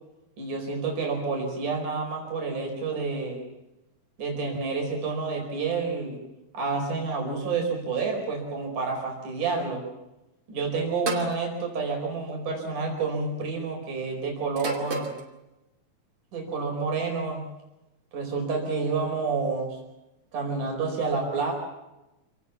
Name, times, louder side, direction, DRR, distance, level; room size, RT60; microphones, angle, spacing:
voice 1, 0.4-3.4 4.2-6.2 6.5-9.8 10.5-15.1 16.3-17.5 18.1-19.8 20.3-21.5, right 4 dB, 80° right, 0 dB, 6.4 m, -29 dB
sound 1, 11.1-11.4 12.6-12.9 14.6-15.2, right 3 dB, 40° right, 3.4 m, -31 dB
27.5 x 19.0 x 7.1 m, 0.97 s
omnidirectional pair, 3.5 m